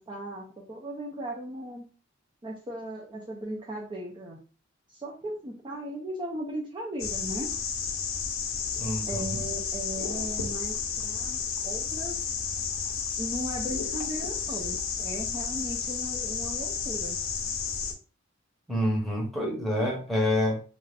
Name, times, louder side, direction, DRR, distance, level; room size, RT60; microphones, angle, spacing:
voice 1, 0.0-1.9 2.4-4.4 4.9-7.5 9.1-12.2 13.2-17.2, right 1 dB, 25° right, -3 dB, 0.4 m, -37 dB
sound 1, 7.0-17.9, left 6 dB, 70° left, 0.5 m, -32 dB
voice 2, 8.8-9.4 18.7-20.6, left 1 dB, ahead, -3 dB, 0.8 m, -27 dB
2.5 x 2.4 x 3.2 m, 0.38 s
head